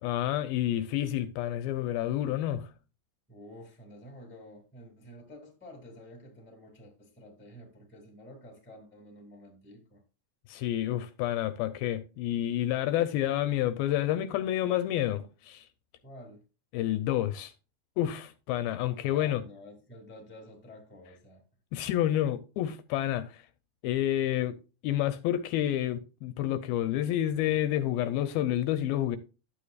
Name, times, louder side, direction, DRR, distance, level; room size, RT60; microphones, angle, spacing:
voice 1, 0.0-2.7 10.5-15.6 16.7-17.5 18.0-19.4 21.7-23.4 23.8-24.6 24.8-29.2, left 12 dB, 80° left, 2.4 m, -29 dB
voice 2, 3.3-10.0 16.0-16.4 19.1-21.4, left 1 dB, 5° left, 1.3 m, -50 dB
11.5 x 8.4 x 2.4 m
omnidirectional pair, 4.5 m